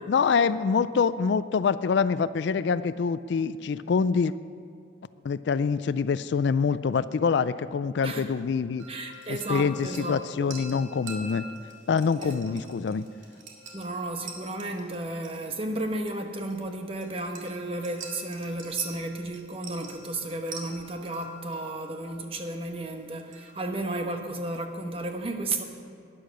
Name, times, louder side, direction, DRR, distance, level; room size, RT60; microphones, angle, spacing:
voice 1, 0.1-4.3 5.2-8.8 9.3-11.4 11.9-13.0, left 5 dB, 65° left, 15 dB, 0.3 m, -25 dB
sound 1, 8.8-23.7, right 3 dB, 80° right, 2.0 m, -46 dB
voice 2, 8.9-10.6 12.2-12.5 13.7-25.6, right 2 dB, 30° right, 5 dB, 1.0 m, -33 dB
11.5 x 10.0 x 6.3 m, 2.4 s
head